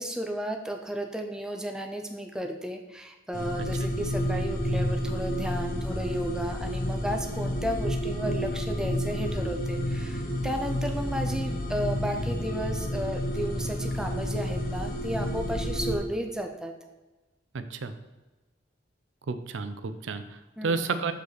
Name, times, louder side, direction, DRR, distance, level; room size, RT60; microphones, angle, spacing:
voice 1, 0.0-16.7 20.6-20.9, right 1 dB, 5° right, 3 dB, 0.5 m, -33 dB
sound 1, 3.3-16.0, left 1 dB, 50° left, 0.9 m, -30 dB
voice 2, 17.5-17.9 19.3-21.1, right 4 dB, 80° right, 10 dB, 0.5 m, -31 dB
6.8 x 5.1 x 4.0 m, 1.1 s
head